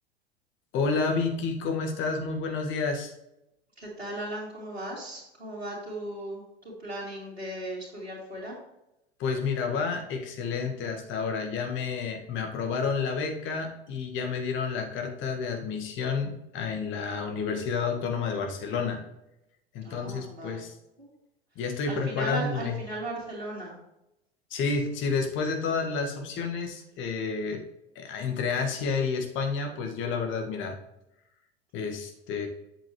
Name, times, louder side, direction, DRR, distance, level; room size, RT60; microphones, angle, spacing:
voice 1, 0.7-3.1 9.2-19.0 19.7-20.7 21.6-22.8 24.5-27.6 28.0-30.8 31.7-32.5, left 5 dB, 40° left, 4 dB, 1.8 m, -30 dB
voice 2, 3.8-8.6 19.8-20.6 21.0-21.1 21.9-23.8, right 1 dB, 85° right, -8 dB, 2.5 m, -37 dB
8.4 x 7.3 x 3.2 m, 0.88 s
figure-of-eight pair, 85°, 31 cm